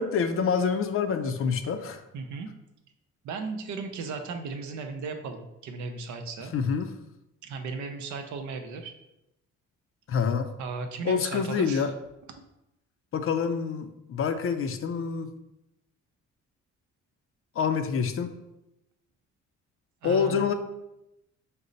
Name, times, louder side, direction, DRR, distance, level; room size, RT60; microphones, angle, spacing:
voice 1, 0.0-2.0 6.5-6.9 10.1-10.5 11.0-11.9 13.1-15.3 17.6-18.3 20.0-20.5, left 6 dB, 45° left, 8 dB, 0.4 m, -27 dB
voice 2, 2.1-2.5 3.2-6.5 7.4-8.9 10.6-11.9 20.0-20.5, right 4 dB, 70° right, 6 dB, 0.6 m, -36 dB
5.2 x 2.0 x 3.9 m, 0.90 s
cardioid pair, 90°, 30 cm